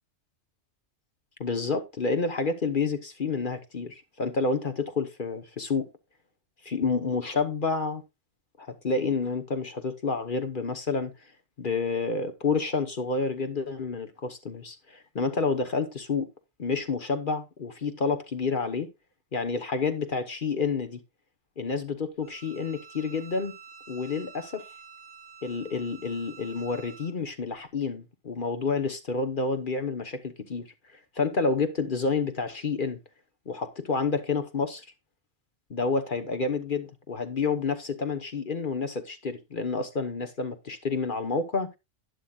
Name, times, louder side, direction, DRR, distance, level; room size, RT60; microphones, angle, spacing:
voice 1, 1.4-5.9 6.6-8.0 8.6-11.1 11.6-16.3 16.6-18.9 19.3-21.0 21.6-23.5 23.9-24.7 25.4-33.0 33.5-34.9 35.7-41.8, left 4 dB, 45° left, 1.1 m, -29 dB
Bowed string instrument, 22.2-27.1, right 6 dB, 5° left, 2.8 m, -49 dB
11.5 x 10.5 x 2.3 m
omnidirectional pair, 1.2 m